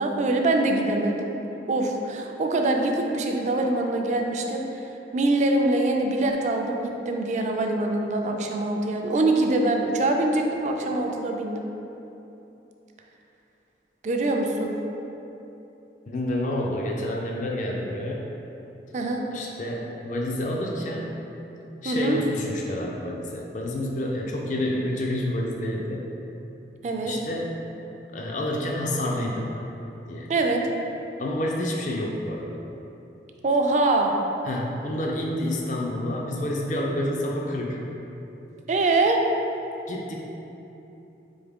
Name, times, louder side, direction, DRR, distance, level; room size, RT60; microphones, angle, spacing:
voice 1, 0.0-1.3 1.7-4.6 5.1-11.7 14.0-14.8 18.9-19.2 21.8-22.2 26.8-27.1 30.3-30.6 33.4-34.1 38.7-39.2, right 2 dB, 40° right, 2 dB, 0.4 m, -24 dB
voice 2, 16.1-18.3 19.3-21.1 21.8-26.1 27.0-27.6 28.1-29.5 30.1-30.3 31.2-32.6 34.5-37.8 39.9-40.2, left 1 dB, 45° left, -1 dB, 0.4 m, -29 dB
4.1 x 3.5 x 3.5 m, 3.0 s
head